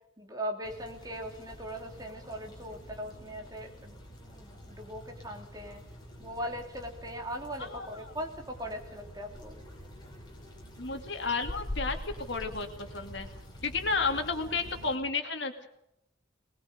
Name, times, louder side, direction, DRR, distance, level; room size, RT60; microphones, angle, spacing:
voice 1, 0.2-4.0 4.3-5.8 6.2-9.6, equal, 20° right, 2 dB, 2.9 m, -39 dB
sound 1, 0.6-15.0, equal, 20° left, 5.4 m, -45 dB
voice 2, 7.6-8.1 10.8-13.3 13.6-15.7, left 4 dB, 60° left, 5 dB, 2.4 m, -32 dB
21.0 x 20.5 x 6.7 m, 0.82 s
head